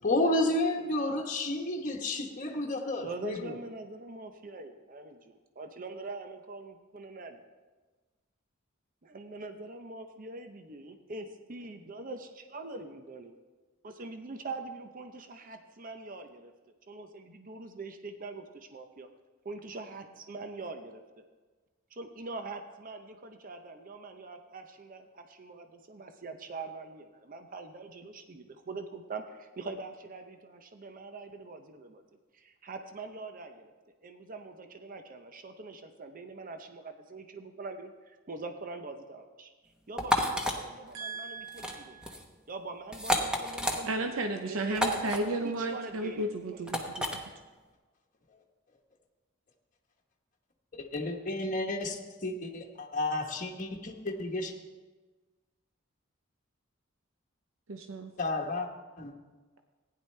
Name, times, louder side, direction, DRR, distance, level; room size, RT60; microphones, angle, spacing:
voice 1, 0.0-3.6 50.7-54.5 58.2-58.7 59.0-59.1, left 2 dB, 40° left, 1 dB, 1.1 m, -31 dB
voice 2, 3.0-7.4 9.0-13.4 13.8-16.5 16.9-19.1 19.4-21.2 21.9-32.0 32.3-33.7 34.0-42.0 42.5-44.1 44.5-45.1 45.4-46.7, right 3 dB, 45° right, 6 dB, 0.7 m, -43 dB
sound 1, 40.0-40.6 41.5-41.8 42.0-42.2 42.9-43.8 44.7-45.2 46.7-47.2, left 1 dB, 5° right, 1.0 m, -30 dB
voice 3, 40.9-42.2 43.8-47.1 57.7-58.1, right 2 dB, 85° right, 5 dB, 0.7 m, -34 dB
15.5 x 10.0 x 3.3 m, 1.3 s
head